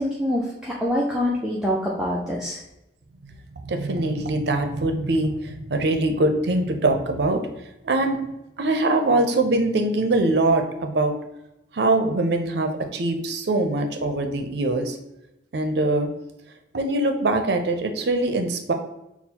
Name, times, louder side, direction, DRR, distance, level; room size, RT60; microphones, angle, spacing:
voice 1, 0.0-2.6, equal, 5° right, -6 dB, 0.4 m, -25 dB
voice 2, 3.6-7.4 7.8-8.2 8.6-11.1 11.7-15.0 15.5-16.1 16.7-18.7, right 2 dB, 60° right, 5 dB, 0.5 m, -22 dB
6.0 x 2.0 x 2.8 m, 0.91 s
head